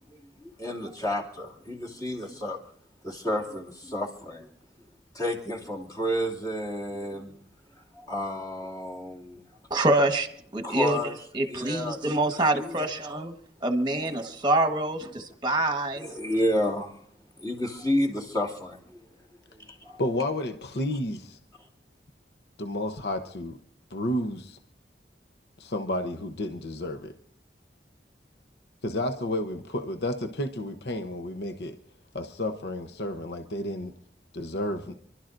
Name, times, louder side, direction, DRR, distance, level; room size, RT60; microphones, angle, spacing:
voice 1, 0.6-2.6 3.0-4.5 5.1-7.3 7.9-9.4 10.6-11.1 11.5-12.0 12.5-12.9 13.9-14.1 16.0-16.9 17.4-19.0 19.7-20.0, equal, 20° left, -2 dB, 2.5 m, -30 dB
voice 2, 9.7-10.3 10.5-13.3 13.6-16.1, right 2 dB, 25° right, 7 dB, 1.3 m, -26 dB
voice 3, 20.0-21.4 22.6-23.6 23.9-24.6 25.6-27.1 28.8-31.8 32.1-33.9 34.3-34.9, left 1 dB, 65° left, 6 dB, 0.9 m, -31 dB
29.0 x 12.0 x 2.6 m, 0.63 s
head